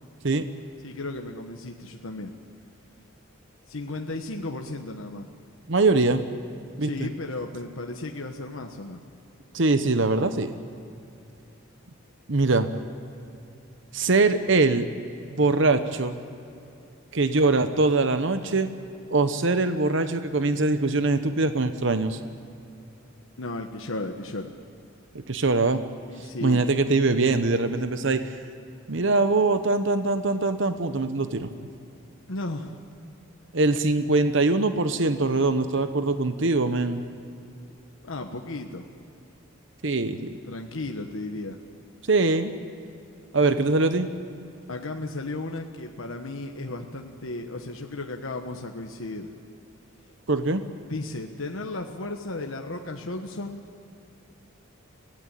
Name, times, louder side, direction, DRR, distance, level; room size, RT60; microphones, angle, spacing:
voice 1, 0.8-2.3 3.7-5.3 6.8-9.0 23.4-24.5 26.1-26.6 32.3-32.8 38.0-38.9 40.5-41.6 44.7-49.3 50.9-53.6, left 2 dB, 70° left, 3 dB, 1.2 m, -34 dB
voice 2, 5.7-6.2 6.8-7.1 9.5-10.5 12.3-12.7 13.9-14.9 15.3-16.2 17.1-18.7 19.1-22.2 25.3-25.8 26.4-28.4 28.9-31.5 33.5-37.0 39.8-40.4 42.1-42.5 43.3-44.1 50.3-50.6, right 3 dB, 60° right, 9 dB, 1.0 m, -22 dB
23.5 x 16.5 x 9.0 m, 2.6 s
head